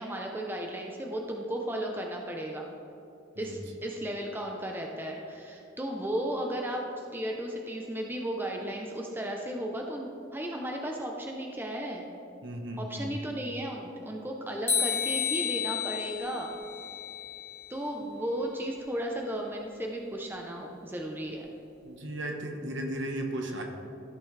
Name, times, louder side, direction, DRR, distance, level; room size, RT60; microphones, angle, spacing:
voice 1, 0.0-2.7 3.4-12.0 12.8-16.5 17.7-21.5, right 1 dB, 10° right, 1 dB, 0.6 m, -35 dB
voice 2, 12.4-13.0 21.8-23.6, right 1 dB, 70° right, 3 dB, 1.1 m, -35 dB
sound 1, 14.7-17.8, left 7 dB, 10° left, 1.0 m, -31 dB
14.0 x 6.0 x 3.3 m, 2.8 s
head